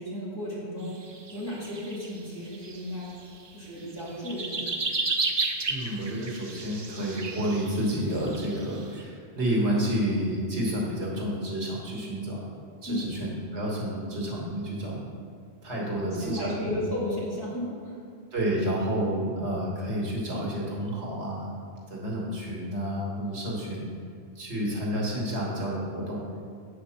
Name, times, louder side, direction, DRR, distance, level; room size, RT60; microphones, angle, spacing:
voice 1, 0.0-3.1 3.5-4.8 12.9-13.1 15.8-18.0, left 1 dB, 20° left, -8 dB, 2.1 m, -34 dB
sound 1, 0.9-2.2 2.5-3.5 3.8-9.0, right 3 dB, 40° right, 0.4 m, -33 dB
voice 2, 5.7-12.5 12.8-15.0 15.6-16.8 18.3-21.6 21.9-23.9 24.3-26.2, right 1 dB, 75° right, -3 dB, 1.8 m, -30 dB
8.0 x 4.2 x 5.8 m, 2.2 s
omnidirectional pair, 1.1 m